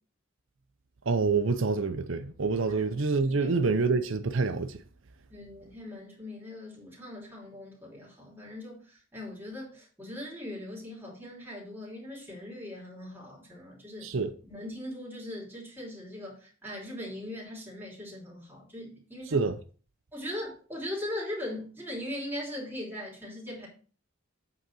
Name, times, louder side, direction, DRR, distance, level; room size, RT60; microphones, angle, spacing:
voice 1, 1.1-4.8 14.0-14.3 19.3-19.5, right 4 dB, 65° right, 0.7 m, -27 dB
voice 2, 5.3-14.1 14.4-19.4 20.1-23.7, left 1 dB, 10° right, 3.0 m, -40 dB
8.4 x 3.9 x 6.1 m
head